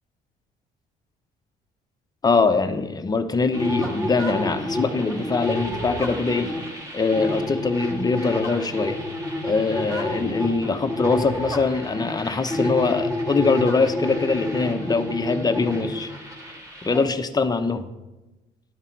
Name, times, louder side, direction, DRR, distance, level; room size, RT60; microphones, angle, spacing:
voice 1, 2.2-6.5 6.9-9.0 9.4-16.1 16.8-17.9, left 4 dB, 25° left, 8 dB, 0.9 m, -23 dB
sound 1, 3.5-17.0, left 1 dB, 20° right, 3.3 m, -29 dB
12.5 x 11.0 x 4.6 m, 1.1 s
cardioid pair, 110°, 17 cm